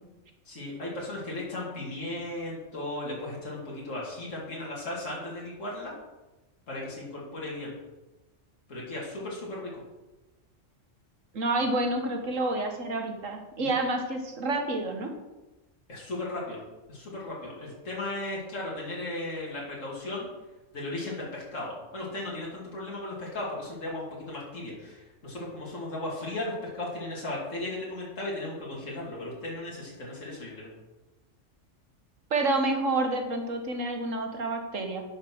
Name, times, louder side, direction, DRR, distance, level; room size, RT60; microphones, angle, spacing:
voice 1, 0.5-5.9 6.7-7.7 8.7-9.7 13.6-13.8 15.9-16.6 16.9-20.3 20.7-30.7, left 2 dB, 75° left, -4 dB, 2.9 m, -36 dB
voice 2, 11.3-15.1 32.3-35.0, right 2 dB, 80° right, 4 dB, 1.8 m, -28 dB
10.5 x 5.7 x 6.1 m, 1.1 s
omnidirectional pair, 1.3 m